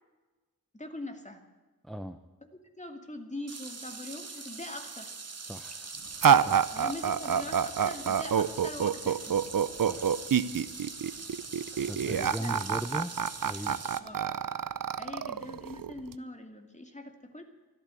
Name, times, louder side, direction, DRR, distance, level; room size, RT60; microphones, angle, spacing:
voice 1, 0.7-1.4 2.8-5.1 6.7-9.4 12.4-12.5 14.0-14.3 15.0-17.4, left 1 dB, 20° left, 5 dB, 2.5 m, -42 dB
voice 2, 1.8-2.2 5.5-5.9 6.4-6.8 9.8-10.2 11.7-13.1 13.4-13.8, equal, ahead, 9 dB, 0.8 m, -38 dB
sound 1, 3.5-14.0, right 4 dB, 45° right, 1.4 m, -43 dB
sound 2, 6.2-16.1, right 8 dB, 65° right, 0.7 m, -27 dB
14.0 x 12.0 x 8.3 m, 1.3 s
wide cardioid pair, 55°, 36 cm